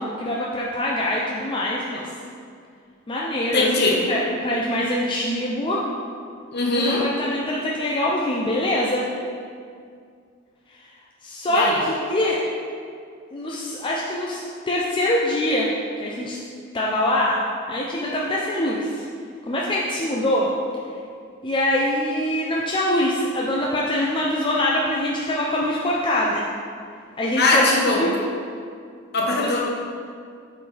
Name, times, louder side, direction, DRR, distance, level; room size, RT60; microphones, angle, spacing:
voice 1, 0.0-2.1 3.1-5.8 6.8-9.1 11.2-12.4 13.3-14.4 14.7-15.7 16.0-16.4 16.7-17.4 17.7-19.0 19.5-20.5 21.4-26.5 27.2-28.1, left 1 dB, 25° left, -4 dB, 0.5 m, -24 dB
voice 2, 3.5-4.0 6.5-7.1 11.5-11.8 27.4-28.0 29.1-29.6, left 2 dB, 55° left, -2 dB, 1.1 m, -20 dB
8.6 x 4.7 x 3.4 m, 2.2 s
head